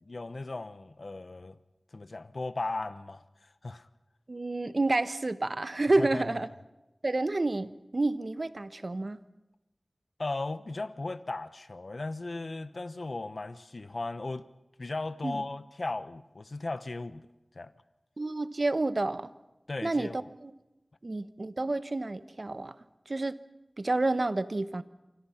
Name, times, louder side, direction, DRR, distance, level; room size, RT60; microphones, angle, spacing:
voice 1, 0.1-1.6 1.9-3.9 6.0-6.4 10.2-14.4 14.8-17.3 17.5-17.7 19.7-20.2, left 2 dB, 65° left, 1.0 m, -36 dB
voice 2, 4.3-6.5 7.0-9.2 15.2-15.4 18.2-19.3 19.8-20.5 21.0-22.7 23.1-23.4 23.8-24.8, right 2 dB, 55° right, 1.2 m, -29 dB
28.0 x 25.0 x 5.8 m
wide cardioid pair, 50°, 0 cm